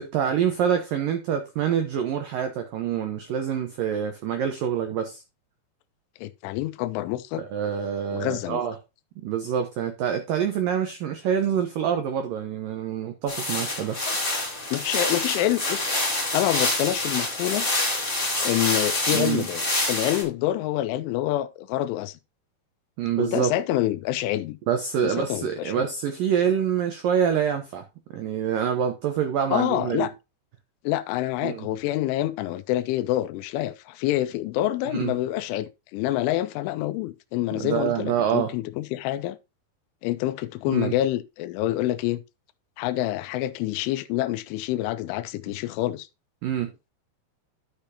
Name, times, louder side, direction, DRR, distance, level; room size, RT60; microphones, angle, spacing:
voice 1, 0.0-5.2 7.3-8.8 9.2-14.0 19.1-19.5 23.0-23.5 24.7-27.8 28.1-30.1 31.4-31.7 34.9-35.1 37.6-38.5 40.7-40.9 46.4-46.7, right 8 dB, 85° right, 1.9 m, -26 dB
voice 2, 6.2-7.4 8.1-8.6 14.1-14.2 14.7-17.7 18.4-22.2 23.2-24.6 25.0-25.9 29.5-30.1 30.8-39.4 40.0-42.2 42.8-46.1, left 14 dB, 85° left, 3.1 m, -27 dB
sound 1, 13.3-20.2, left 2 dB, 20° left, 1.7 m, -27 dB
11.5 x 6.8 x 2.8 m
omnidirectional pair, 5.5 m